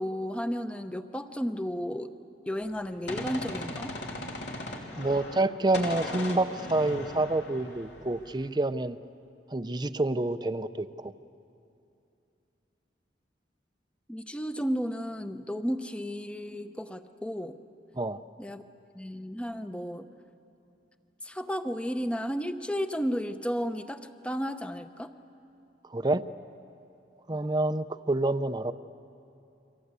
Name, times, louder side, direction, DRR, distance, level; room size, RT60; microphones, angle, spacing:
voice 1, 0.0-2.1 2.5-3.9 14.1-17.6 18.4-18.6 18.9-20.1 21.2-25.1, equal, 5° left, 9 dB, 0.8 m, -33 dB
Gunshot gunfire, 2.6-5.5 5.7-8.5, left 2 dB, 75° left, 3.1 m, -38 dB
voice 2, 5.0-9.0 9.5-11.1 17.9-18.2 25.9-26.2 27.3-28.7, right 2 dB, 25° right, 12 dB, 0.6 m, -28 dB
29.5 x 24.0 x 8.2 m, 2.7 s
head